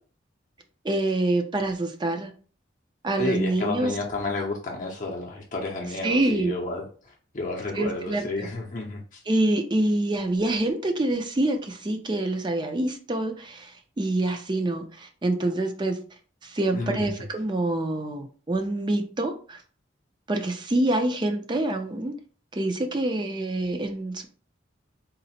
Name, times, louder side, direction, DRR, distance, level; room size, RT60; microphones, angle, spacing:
voice 1, 0.8-2.3 3.0-3.9 6.0-6.5 7.8-8.5 9.3-13.7 14.0-16.0 16.4-19.6 20.3-22.1 22.5-24.3, right 1 dB, 25° right, 5 dB, 0.5 m, -26 dB
voice 2, 3.2-9.2 16.7-17.1, left 2 dB, 40° left, -1 dB, 0.6 m, -31 dB
3.9 x 2.1 x 4.1 m, 0.40 s
head